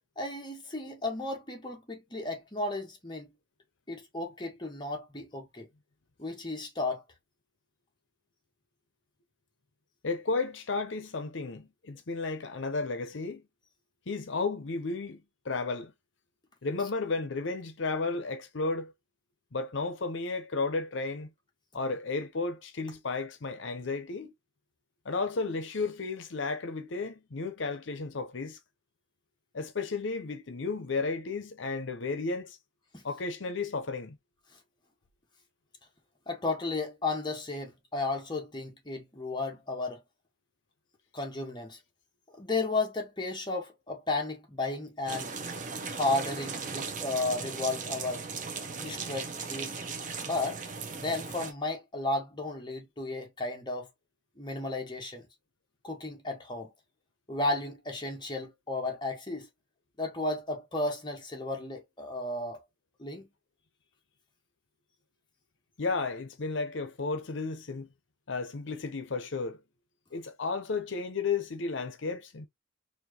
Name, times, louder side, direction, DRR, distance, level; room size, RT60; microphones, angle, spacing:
voice 1, 0.2-3.3 3.9-5.7 6.2-7.0 32.9-33.0 36.3-40.0 41.1-41.8 42.4-45.3 45.9-48.2 48.8-49.8 50.2-50.6 50.9-53.9 54.4-55.2 55.8-56.7 57.3-59.5 60.0-62.6 63.0-63.3, left 2 dB, 25° left, 1.3 m, -33 dB
voice 2, 10.0-13.4 14.1-15.9 16.6-18.9 19.5-21.3 21.7-24.3 25.0-28.6 29.5-32.6 33.0-34.2 65.8-67.9 68.3-69.6 70.1-72.5, left 3 dB, 65° left, 0.7 m, -33 dB
sound 1, 45.1-51.5, right 5 dB, 40° right, 0.9 m, -37 dB
4.4 x 2.9 x 2.9 m
head